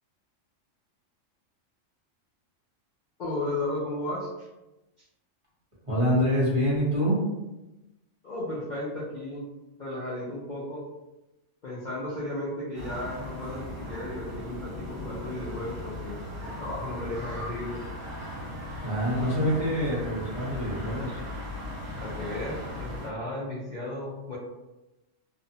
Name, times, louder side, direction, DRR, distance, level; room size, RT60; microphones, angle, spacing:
voice 1, 3.2-4.5 5.0-5.1 8.2-9.4 9.8-10.8 11.6-17.8 21.9-24.4, left 1 dB, 55° left, -7 dB, 0.5 m, -34 dB
voice 2, 5.9-7.2 18.8-21.2, equal, 30° right, -9 dB, 0.9 m, -26 dB
sound 1, 12.7-23.1, left 1 dB, 65° right, 1.1 m, -38 dB
2.6 x 2.0 x 2.7 m, 1.0 s
omnidirectional pair, 1.3 m